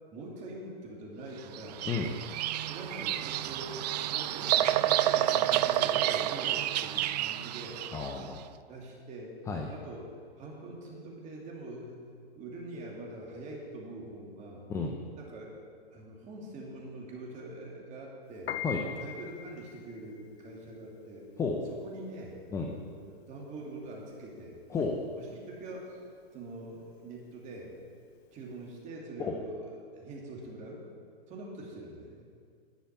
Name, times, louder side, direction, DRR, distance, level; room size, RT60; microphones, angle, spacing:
voice 1, 0.1-1.8 2.7-8.1 8.7-9.4 9.7-10.1 10.4-12.0 12.4-14.6 15.2-15.5 15.9-18.6 19.0-21.3 21.7-24.6 25.2-26.0 26.3-27.7 28.3-30.8 31.3-32.2, right 2 dB, 25° right, -2 dB, 2.6 m, -44 dB
Bird vocalization bird call bird song, 1.5-8.2, right 13 dB, 45° right, 0.4 m, -29 dB
voice 2, 7.9-8.5 9.5-9.7 14.7-14.9 18.6-18.8 21.4-21.6 22.5-22.7 24.7-25.0 29.2-29.3, left 4 dB, 10° left, 1 dB, 0.5 m, -32 dB
Piano, 18.3-28.7, left 9 dB, 85° left, 0.6 m, -44 dB
11.0 x 5.6 x 8.8 m, 2.2 s
hypercardioid pair, 135°, 30 cm